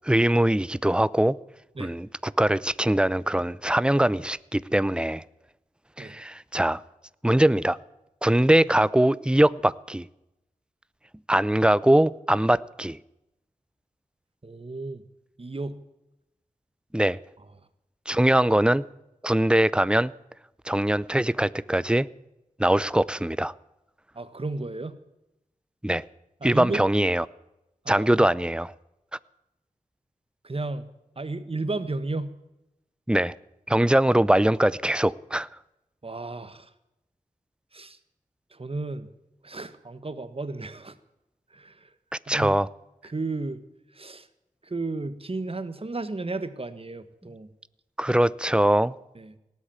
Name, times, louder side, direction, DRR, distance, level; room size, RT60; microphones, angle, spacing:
voice 1, 0.0-1.4 1.8-5.2 6.0-6.8 7.2-7.8 8.2-10.1 11.3-13.0 16.9-17.2 18.1-18.9 19.2-20.1 20.7-22.1 22.6-23.5 25.8-26.0 26.4-27.2 27.9-28.7 33.1-33.3 33.7-35.5 42.3-42.7 48.0-48.9, right 1 dB, 5° right, 0.6 m, -22 dB
voice 2, 14.4-15.0 15.4-15.8 24.1-25.0 26.4-26.8 27.8-28.3 30.4-30.9 31.2-32.4 36.0-36.7 37.7-38.0 38.5-39.1 39.4-41.0 41.5-41.9 42.3-42.5 43.0-43.6 43.9-44.3 44.6-47.5 49.1-49.4, right 3 dB, 45° right, 1.4 m, -33 dB
18.5 x 8.3 x 8.8 m
cardioid pair, 50°, 14 cm